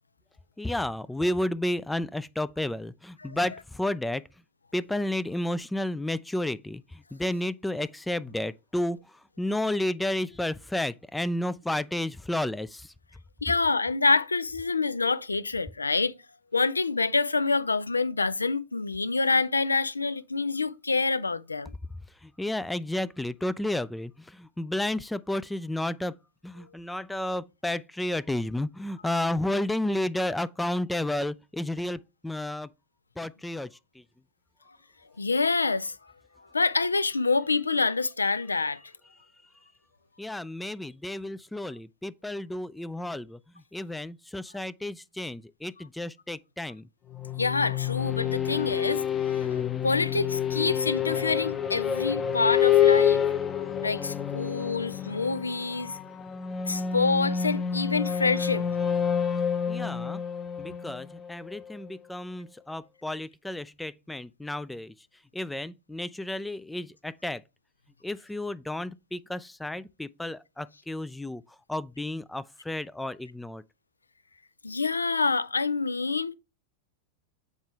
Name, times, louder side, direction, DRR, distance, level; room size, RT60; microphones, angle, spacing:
voice 1, 0.6-4.2 4.7-9.0 9.4-12.9 22.2-26.1 26.4-32.7 33.2-33.7 34.0-34.1 40.2-43.4 43.7-46.8 59.7-60.2 60.6-64.9 65.3-67.4 68.0-71.4 71.7-73.6, left 1 dB, 5° left, 0.3 m, -32 dB
voice 2, 13.4-16.1 16.5-21.7 35.2-36.0 36.5-38.8 47.4-49.4 49.8-53.2 53.8-56.0 56.7-58.7 74.6-76.3, left 4 dB, 80° left, 0.4 m, -27 dB
sound 1, 47.1-61.7, left 8 dB, 20° left, 0.8 m, -28 dB
7.2 x 4.8 x 3.2 m
figure-of-eight pair, 90°, 0 cm